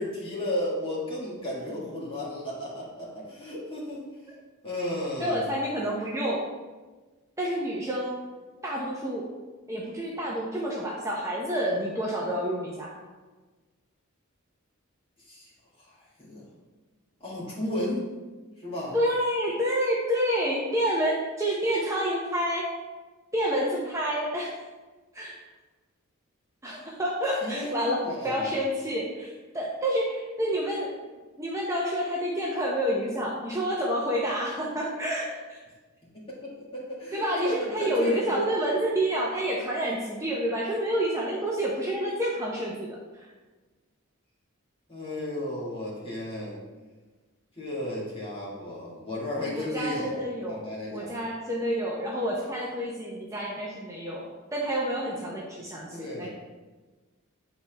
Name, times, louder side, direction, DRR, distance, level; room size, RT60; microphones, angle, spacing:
voice 1, 0.0-4.0 4.6-5.4 15.3-15.5 15.9-16.4 17.2-18.1 18.6-18.9 27.4-28.5 36.3-38.5 44.9-46.6 47.6-51.2 55.9-56.3, left 1 dB, 25° left, -7 dB, 1.9 m, -34 dB
voice 2, 5.2-6.5 7.4-8.2 8.6-9.3 9.7-12.9 18.9-22.7 23.3-24.6 25.1-25.3 26.6-30.9 31.4-35.6 37.1-43.3 49.4-50.6 50.9-54.2 54.5-56.3, equal, 15° right, -4 dB, 0.7 m, -28 dB
8.0 x 4.2 x 3.4 m, 1.3 s
head